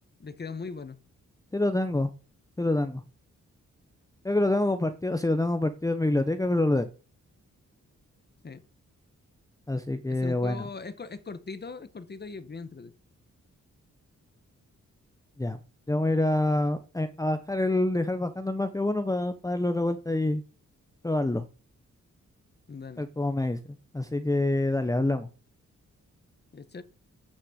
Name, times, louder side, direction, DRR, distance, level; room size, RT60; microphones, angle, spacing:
voice 1, 0.2-1.0 8.4-8.6 10.1-12.9 22.7-23.1 26.5-26.8, left 4 dB, 35° left, 1.3 m, -40 dB
voice 2, 1.5-2.1 2.6-3.0 4.2-6.9 9.7-10.7 15.4-15.6 15.9-20.4 21.0-21.5 23.0-23.6 23.9-25.3, left 2 dB, 10° left, 0.8 m, -26 dB
9.9 x 6.4 x 7.9 m
wide cardioid pair, 115°, 30 cm